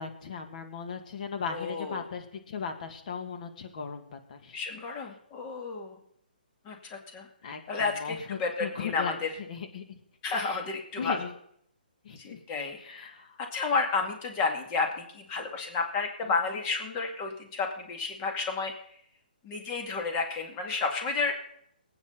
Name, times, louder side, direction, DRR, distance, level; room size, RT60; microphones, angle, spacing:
voice 1, 0.0-4.6 7.4-9.2 9.5-10.0 10.3-10.6 11.0-11.3 12.0-12.4 12.8-13.4, left 6 dB, 50° left, 5 dB, 2.1 m, -38 dB
voice 2, 1.5-2.0 4.5-6.0 6.7-7.3 7.7-9.3 10.2-11.2 12.2-12.8 13.4-18.7 19.4-21.3, left 4 dB, 25° left, 2 dB, 2.2 m, -31 dB
23.5 x 8.9 x 4.0 m, 0.68 s
hypercardioid pair, 145°, 5 cm